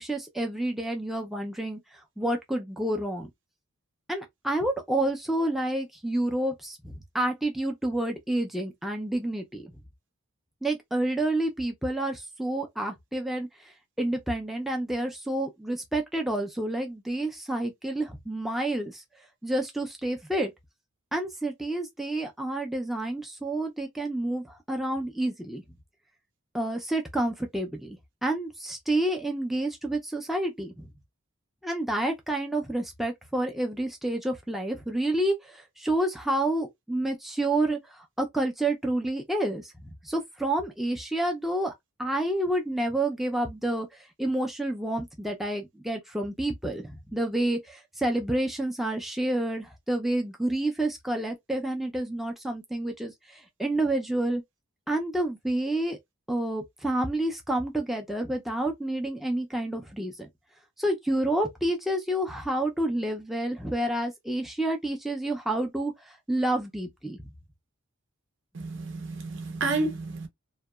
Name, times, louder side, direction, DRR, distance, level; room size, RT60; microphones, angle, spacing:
voice 1, 0.0-3.3 4.1-9.7 10.6-19.0 19.4-20.5 21.1-25.6 26.5-30.9 31.6-39.7 40.0-41.7 42.0-54.4 54.9-56.0 56.3-60.3 60.8-67.2, right 1 dB, ahead, 0.3 m, -29 dB
voice 2, 68.5-70.3, right 3 dB, 55° right, 0.6 m, -30 dB
2.7 x 2.1 x 2.2 m
head